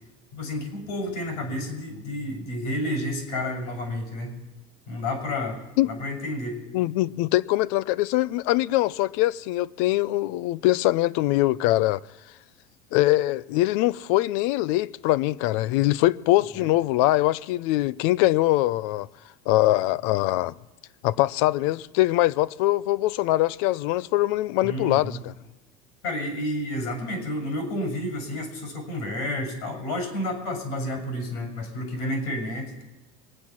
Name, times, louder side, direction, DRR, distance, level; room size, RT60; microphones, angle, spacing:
voice 1, 0.3-4.4 4.9-6.6 16.5-16.7 24.6-25.2 26.0-32.8, left 1 dB, 85° left, 6.2 m, -30 dB
voice 2, 6.7-12.0 12.9-19.1 19.5-20.5 21.0-25.3, left 17 dB, 70° left, 0.5 m, -23 dB
23.0 x 9.9 x 5.9 m
cardioid pair, 145°, 19 cm